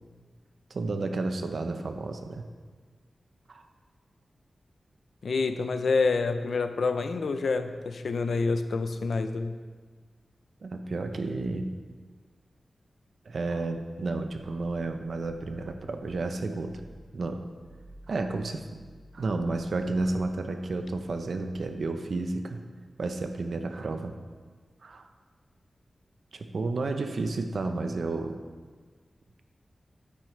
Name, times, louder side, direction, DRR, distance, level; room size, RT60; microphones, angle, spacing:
voice 1, 0.7-2.4 3.5-3.7 10.6-11.7 13.2-16.8 17.1-17.5 18.1-18.6 19.1-22.6 23.0-24.1 24.8-25.1 26.3-28.4, right 3 dB, 70° right, 6 dB, 0.8 m, -31 dB
voice 2, 5.2-9.5, left 4 dB, 80° left, 9 dB, 0.5 m, -27 dB
sound 1, 16.5-17.1 17.5-21.7, equal, 55° left, 2.1 m, -54 dB
9.8 x 9.2 x 3.3 m, 1.5 s
wide cardioid pair, 100°, 0 cm